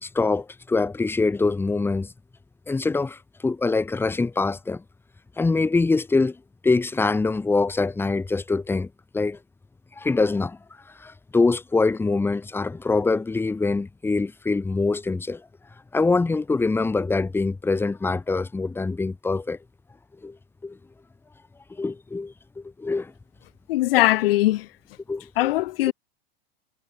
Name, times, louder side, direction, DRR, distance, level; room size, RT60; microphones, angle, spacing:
voice 1, 0.0-2.1 2.7-4.8 5.4-6.4 6.6-8.9 9.1-9.4 10.0-10.6 11.0-15.4 15.9-19.6 20.2-20.4 20.6-20.8 21.8-23.1 25.1-25.5, left 3 dB, 5° left, 2.5 m, -24 dB
voice 2, 23.7-24.7 25.4-25.9, left 17 dB, 65° left, 1.8 m, -20 dB
supercardioid pair, 150°, 31 cm